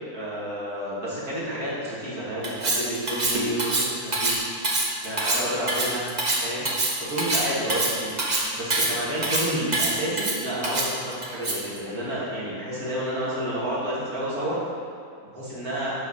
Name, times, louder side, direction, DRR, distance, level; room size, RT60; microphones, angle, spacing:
voice 1, 0.1-4.5 5.0-6.0 6.4-6.7 7.0-8.2 8.5-14.6 15.3-15.9, right 1 dB, 75° right, -8 dB, 2.9 m, -30 dB
Cutlery silverware, 2.4-11.8, right 2 dB, 35° right, 1.0 m, -25 dB
11.5 x 4.8 x 4.3 m, 2.4 s
omnidirectional pair, 1.6 m